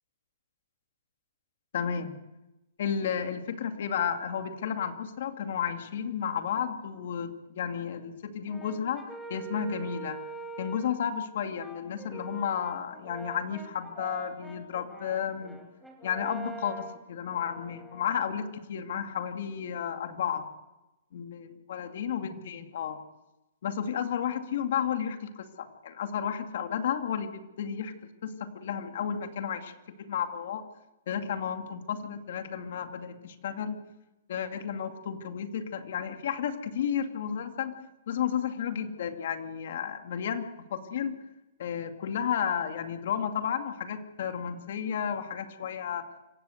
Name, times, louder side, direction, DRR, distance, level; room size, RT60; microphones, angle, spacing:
voice 1, 1.7-2.1 2.8-9.0 9.3-10.2 10.6-15.6 16.0-20.5 21.1-23.0 23.6-27.9 28.2-29.7 30.0-30.6 31.1-33.8 34.3-37.8 38.1-41.2 41.6-46.1, left 8 dB, 60° left, 7 dB, 2.4 m, -32 dB
Brass instrument, 8.5-11.0 11.6-18.5, right 3 dB, ahead, 2.7 m, -44 dB
26.0 x 15.5 x 8.0 m, 1.0 s
hypercardioid pair, 160°, 0 cm